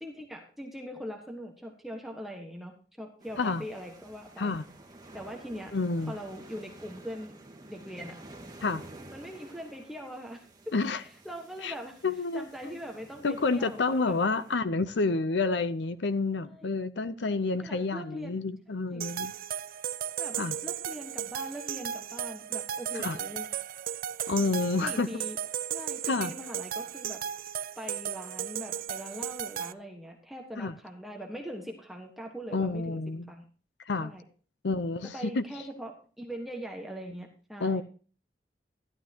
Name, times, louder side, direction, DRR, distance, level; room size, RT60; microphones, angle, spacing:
voice 1, 0.0-4.6 5.1-5.7 6.1-7.3 7.7-8.2 9.1-10.7 11.0-12.0 12.3-14.2 16.5-16.7 17.5-18.4 18.9-19.0 20.2-20.4 20.6-23.5 24.8-25.4 25.7-27.2 27.8-33.0 33.3-33.4 34.0-34.2 35.0-37.8, equal, ahead, 1.3 m, -41 dB
sound 1, 3.2-14.6, right 2 dB, 20° right, 1.8 m, -51 dB
voice 2, 5.7-6.1 8.6-8.8 10.7-11.0 11.6-11.7 12.0-12.5 13.2-19.3 20.4-20.5 23.0-23.2 24.3-25.1 26.1-26.3 30.6-30.7 32.5-33.3 33.9-34.1 34.6-35.4 37.6-37.8, left 3 dB, 85° left, 0.7 m, -29 dB
sound 2, 19.0-29.7, right 9 dB, 55° right, 0.4 m, -35 dB
13.0 x 12.0 x 2.9 m
head